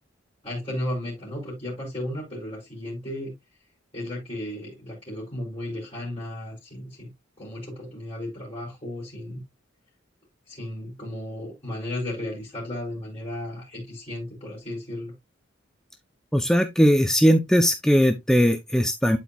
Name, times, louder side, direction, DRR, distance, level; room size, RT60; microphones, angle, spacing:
voice 1, 0.4-3.3 3.9-7.1 7.4-9.4 10.5-15.1, left 1 dB, 30° left, 3.8 m, -34 dB
voice 2, 16.3-19.2, equal, 5° left, 0.5 m, -19 dB
11.5 x 4.5 x 2.3 m
head